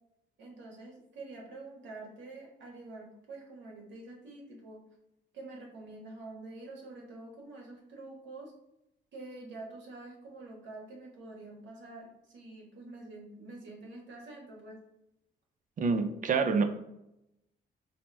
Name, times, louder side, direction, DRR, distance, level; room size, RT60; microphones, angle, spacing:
voice 1, 0.4-4.8 5.3-8.5 9.1-14.8, right 2 dB, 70° right, -2 dB, 1.1 m, -47 dB
voice 2, 15.8-16.6, right 5 dB, 40° right, 8 dB, 0.5 m, -27 dB
4.2 x 2.0 x 3.3 m, 0.86 s
cardioid pair, 90°, 20 cm